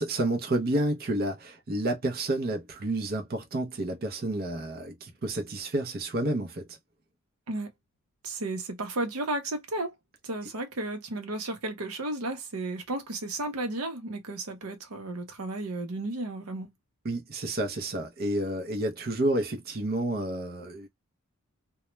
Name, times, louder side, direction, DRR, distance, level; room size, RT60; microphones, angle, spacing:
voice 1, 0.0-6.8 17.0-20.9, right 1 dB, 45° right, 0.6 m, -30 dB
voice 2, 8.2-9.9 10.2-16.7, right 2 dB, 80° right, 0.8 m, -33 dB
2.2 x 2.1 x 3.0 m
head